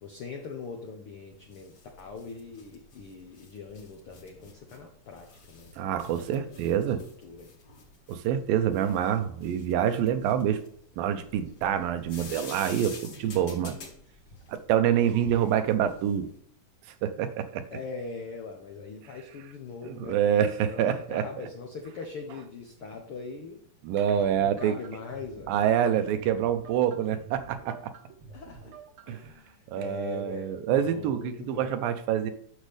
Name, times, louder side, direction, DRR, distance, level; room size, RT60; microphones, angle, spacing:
voice 1, 0.0-6.0 6.3-7.5 17.7-23.6 24.4-25.5 28.3-28.7 29.1-31.7, left 4 dB, 85° left, 3 dB, 1.2 m, -41 dB
sound 1, 1.3-16.3, left 4 dB, 45° left, 2.4 m, -49 dB
voice 2, 5.8-7.0 8.1-10.6 11.0-13.8 14.5-16.3 17.0-17.7 19.8-21.3 23.8-24.7 25.5-27.9 29.1-29.2 29.7-32.3, right 9 dB, 90° right, 9 dB, 2.6 m, -26 dB
sound 2, 24.1-29.3, right 4 dB, 65° right, 1.3 m, -49 dB
10.0 x 6.5 x 3.4 m, 0.64 s
omnidirectional pair, 4.0 m